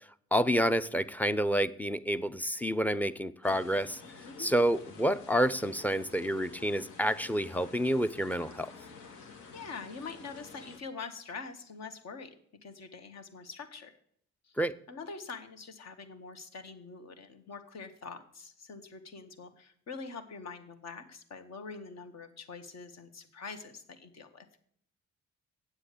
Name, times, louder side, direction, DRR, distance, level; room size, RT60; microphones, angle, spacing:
voice 1, 0.3-4.0 4.4-8.7 14.6-14.7, equal, 5° left, 16 dB, 0.5 m, -29 dB
sound 1, 3.4-10.8, left 4 dB, 85° left, 1.9 m, -50 dB
voice 2, 9.5-12.4 12.6-13.9 14.4-14.6 14.9-24.5, left 4 dB, 60° left, 8 dB, 1.7 m, -44 dB
9.0 x 7.7 x 6.8 m, 0.64 s
cardioid pair, 90°, 30 cm